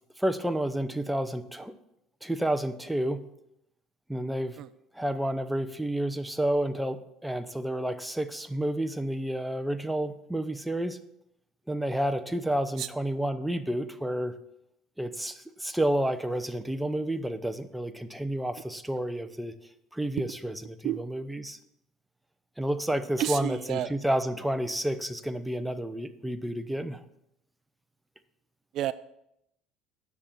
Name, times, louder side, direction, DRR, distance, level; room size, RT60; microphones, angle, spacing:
voice 1, 0.2-1.7 2.2-3.2 4.1-4.6 4.9-11.0 11.7-14.4 15.0-19.6 19.9-21.6 22.6-27.0, right 1 dB, 5° right, 9 dB, 0.8 m, -30 dB
voice 2, 23.2-23.9 28.8-28.9, right 13 dB, 60° right, 16 dB, 0.3 m, -29 dB
9.7 x 6.7 x 5.9 m, 0.80 s
supercardioid pair, 105°, 0 cm